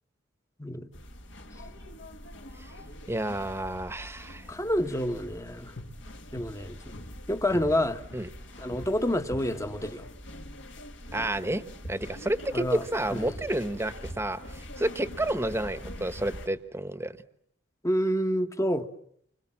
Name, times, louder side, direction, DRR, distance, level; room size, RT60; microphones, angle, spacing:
sound 1, 0.9-16.5, left 1 dB, 65° left, 2.1 m, -43 dB
voice 1, 3.1-4.5 8.1-8.3 11.1-11.6 11.9-17.1, right 1 dB, 15° right, 1.1 m, -30 dB
voice 2, 4.5-5.7 6.3-6.8 7.3-8.0 8.6-10.1 12.5-12.8 13.1-13.4 17.8-18.9, equal, 15° left, 1.2 m, -28 dB
30.0 x 25.5 x 7.4 m
head